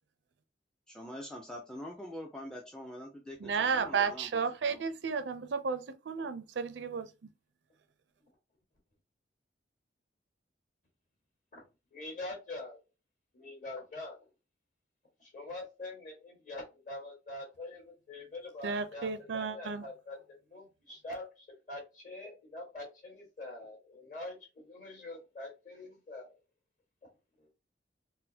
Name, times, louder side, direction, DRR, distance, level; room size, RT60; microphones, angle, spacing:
voice 1, 0.9-4.8, left 1 dB, 5° left, 0.4 m, -45 dB
voice 2, 3.4-7.1 18.6-19.8, right 5 dB, 80° right, 0.5 m, -33 dB
voice 3, 11.9-12.8 13.3-14.2 15.2-20.2 20.5-26.3 27.4-27.5, left 2 dB, 45° left, 1.7 m, -44 dB
4.0 x 2.1 x 2.7 m
head